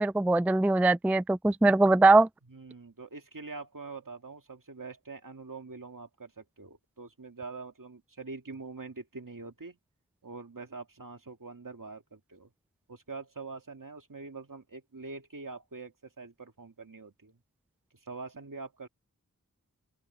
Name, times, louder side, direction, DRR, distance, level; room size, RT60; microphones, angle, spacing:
voice 1, 0.0-2.3, right 2 dB, 5° right, 0.3 m, -22 dB
voice 2, 2.5-9.8 10.2-12.5 12.9-17.4 18.0-18.9, right 4 dB, 65° right, 2.4 m, -44 dB
open air
wide cardioid pair, 40°, 34 cm